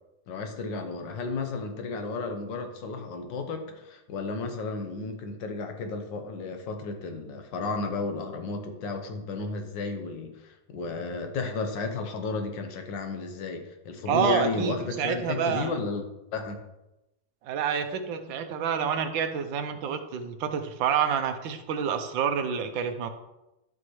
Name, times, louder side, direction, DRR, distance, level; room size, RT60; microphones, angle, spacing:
voice 1, 0.3-16.0 16.3-16.6, left 3 dB, 75° left, 5 dB, 1.6 m, -33 dB
voice 2, 14.1-15.8 17.4-23.1, right 7 dB, 85° right, 7 dB, 1.4 m, -28 dB
12.0 x 5.2 x 3.1 m, 0.94 s
omnidirectional pair, 2.0 m